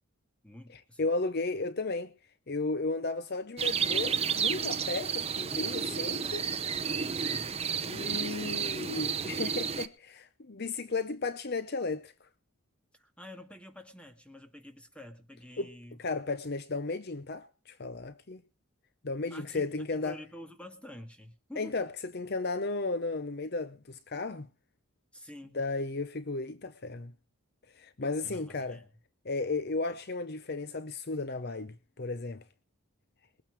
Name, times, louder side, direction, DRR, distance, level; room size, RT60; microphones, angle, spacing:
voice 1, 0.4-1.1 7.2-7.5 12.9-16.0 19.3-21.8 25.1-25.6 28.2-28.9, left 1 dB, 5° left, 1.9 m, -48 dB
voice 2, 1.0-2.1 2.5-6.4 7.8-12.1 15.6-15.7 16.0-18.4 19.0-20.2 21.6-21.9 22.1-24.5 25.5-27.1 27.7-28.8 29.2-32.4, left 3 dB, 45° left, 0.7 m, -34 dB
sound 1, 3.6-9.9, right 6 dB, 25° right, 0.7 m, -31 dB
21.5 x 8.9 x 4.7 m
head